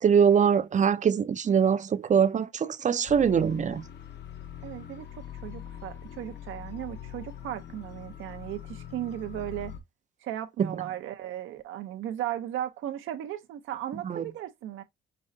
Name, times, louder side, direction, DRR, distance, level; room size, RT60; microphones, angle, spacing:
voice 1, 0.0-3.8 10.6-10.7 14.0-14.2, right 7 dB, 40° right, 0.5 m, -23 dB
sound 1, 3.1-9.8, left 9 dB, 60° left, 1.0 m, -43 dB
voice 2, 4.6-5.1 5.4-9.7 10.2-14.8, right 12 dB, 85° right, 0.8 m, -36 dB
5.3 x 3.2 x 2.6 m
cardioid pair, 90°, 20 cm